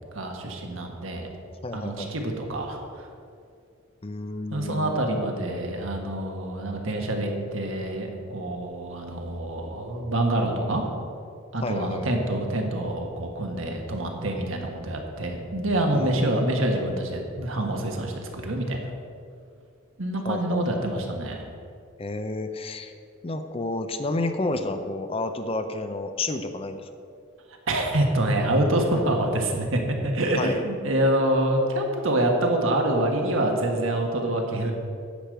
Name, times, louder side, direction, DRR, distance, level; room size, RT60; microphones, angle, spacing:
voice 1, 0.1-1.3 1.7-3.1 4.5-10.9 11.5-18.8 20.0-21.4 27.7-34.7, right 1 dB, 70° right, 2 dB, 1.5 m, -26 dB
voice 2, 1.6-2.1 4.0-5.0 11.6-12.1 15.9-16.4 20.3-21.1 22.0-22.9 23.2-26.9 30.4-30.6, left 2 dB, 30° left, 8 dB, 0.5 m, -31 dB
10.0 x 5.1 x 7.7 m, 2.4 s
head